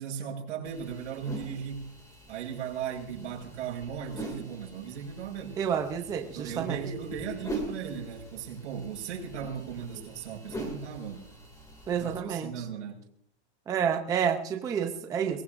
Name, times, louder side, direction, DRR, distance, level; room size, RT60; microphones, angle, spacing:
voice 1, 0.0-1.9 2.3-5.6 6.4-11.2 12.0-13.0, right 7 dB, 85° right, 5.5 m, -37 dB
sound 1, 0.6-12.2, right 1 dB, 10° left, 2.4 m, -43 dB
voice 2, 5.6-6.8 9.9-10.0 11.9-12.7 13.7-15.4, right 7 dB, 10° right, 0.5 m, -29 dB
23.0 x 18.5 x 2.6 m
supercardioid pair, 170°, 35 cm